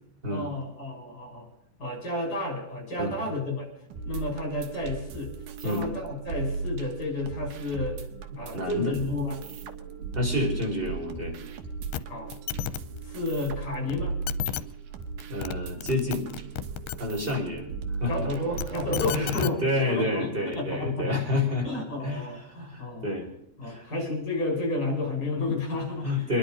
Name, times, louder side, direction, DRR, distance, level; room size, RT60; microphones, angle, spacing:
voice 1, 0.3-1.5 1.8-3.7 4.0-5.3 5.6-8.0 8.3-9.4 12.1-12.3 13.0-14.2 18.1-21.2 21.6-23.0 23.6-26.4, left 2 dB, 25° left, 1 dB, 6.0 m, -31 dB
sound 1, 3.9-19.3, right 4 dB, 75° right, 2.8 m, -37 dB
voice 2, 8.5-8.9 10.1-11.3 15.3-16.2 17.0-17.7 18.0-18.3 19.1-21.7 22.0-23.3 23.6-23.9 26.0-26.4, left 2 dB, 15° right, 0 dB, 4.4 m, -29 dB
sound 2, 11.9-12.0 12.3-12.8 13.9-14.0 14.3-14.6 15.2-15.5 15.8-17.0 18.3-19.5 20.5-20.6, left 13 dB, 80° left, 2.3 m, -32 dB
25.0 x 11.0 x 5.2 m, 0.76 s
omnidirectional pair, 3.9 m